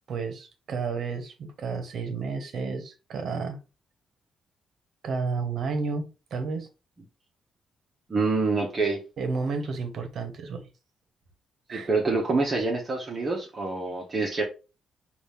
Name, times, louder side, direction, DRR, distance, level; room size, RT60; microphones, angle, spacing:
voice 1, 0.1-3.6 5.0-6.0 6.3-6.7 9.2-10.6 11.7-11.9, right 4 dB, 55° right, 0.9 m, -31 dB
voice 2, 8.1-9.0 11.7-14.4, right 3 dB, 25° right, 0.9 m, -26 dB
5.9 x 2.4 x 3.5 m
cardioid pair, 160°, 0 cm